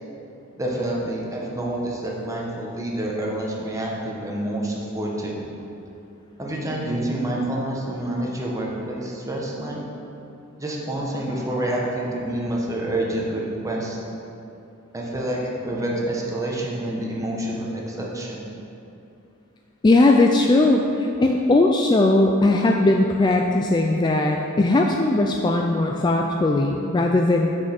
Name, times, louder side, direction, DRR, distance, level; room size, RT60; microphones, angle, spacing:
voice 1, 0.5-5.4 6.4-9.8 10.6-14.0 14.9-18.5, right 1 dB, 15° right, -3 dB, 1.1 m, -28 dB
voice 2, 19.8-27.5, left 2 dB, 20° left, 1 dB, 0.3 m, -19 dB
6.5 x 6.2 x 5.8 m, 2.7 s
head